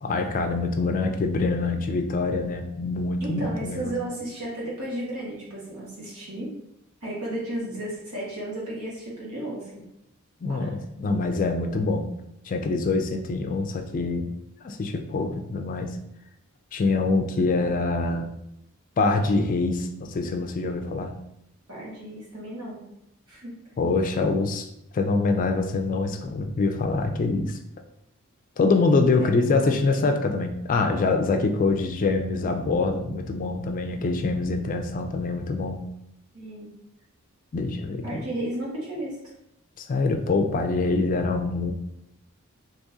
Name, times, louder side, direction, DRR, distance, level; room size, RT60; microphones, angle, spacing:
voice 1, 0.0-3.9 10.4-12.1 12.5-14.3 14.6-16.0 16.7-18.3 19.0-21.2 23.8-24.7 24.9-27.6 28.6-35.9 37.5-38.3 39.8-41.7, left 3 dB, 40° left, 5 dB, 0.3 m, -25 dB
voice 2, 3.2-6.5 7.0-9.8 10.5-10.7 21.7-22.8 23.3-23.5 29.2-29.3 29.6-29.9 36.3-36.7 38.0-39.2, right 1 dB, 85° right, -5 dB, 1.5 m, -33 dB
3.5 x 2.9 x 2.7 m, 0.80 s
head